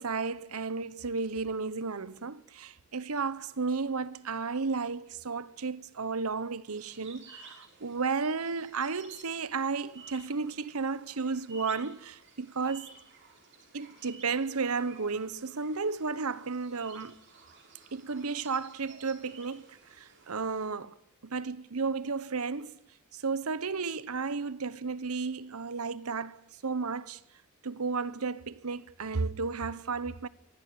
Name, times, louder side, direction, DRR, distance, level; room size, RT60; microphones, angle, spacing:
voice 1, 0.0-12.9 13.7-17.2 17.9-19.7 20.0-20.9 21.2-22.8 23.1-27.2 27.6-30.3, right 4 dB, 75° right, 1.0 m, -33 dB
sound 1, 6.7-20.7, right 4 dB, 55° right, 6.6 m, -54 dB
24.0 x 16.0 x 9.3 m
head